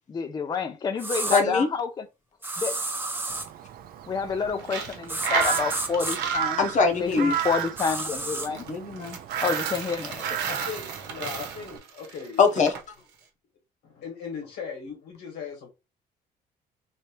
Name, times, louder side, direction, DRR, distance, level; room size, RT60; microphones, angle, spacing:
voice 1, 0.1-2.0 2.6-2.8 4.1-6.6 6.9-8.6 9.4-10.2, left 5 dB, 25° left, 0.5 m, -28 dB
sound 1, 1.0-1.4 2.4-3.5 5.1-6.2 7.8-8.5, right 2 dB, 10° right, 0.7 m, -30 dB
voice 2, 1.3-1.7 6.6-7.3 8.5-9.2 12.4-12.7, left 4 dB, 45° left, 1.0 m, -22 dB
Crow, 3.3-11.8, right 8 dB, 60° right, 0.5 m, -34 dB
Coin (dropping), 4.6-12.8, right 5 dB, 90° right, 0.9 m, -34 dB
voice 3, 10.5-12.4 13.8-15.7, left 6 dB, 75° left, 1.7 m, -38 dB
3.2 x 2.7 x 3.0 m
cardioid pair, 110°, 17 cm